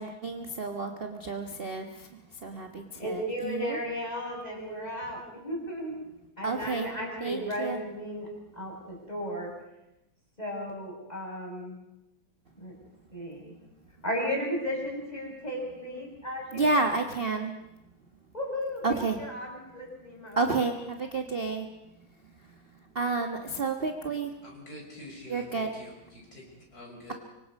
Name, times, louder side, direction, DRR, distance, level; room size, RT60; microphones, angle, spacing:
voice 1, 0.0-3.8 6.4-6.9 7.2-7.8 16.5-17.6 18.8-19.2 20.4-21.7 22.2-24.3 25.3-25.7, right 3 dB, 35° right, 4 dB, 1.3 m, -31 dB
voice 2, 3.0-5.9 6.4-8.3 8.5-9.5 10.4-11.8 12.6-12.7 13.1-13.5 14.0-16.8 18.3-20.4, equal, 20° left, -1 dB, 6.3 m, -35 dB
voice 3, 24.4-27.1, left 1 dB, 45° left, -1 dB, 6.2 m, -46 dB
25.0 x 24.0 x 5.4 m, 0.93 s
omnidirectional pair, 2.2 m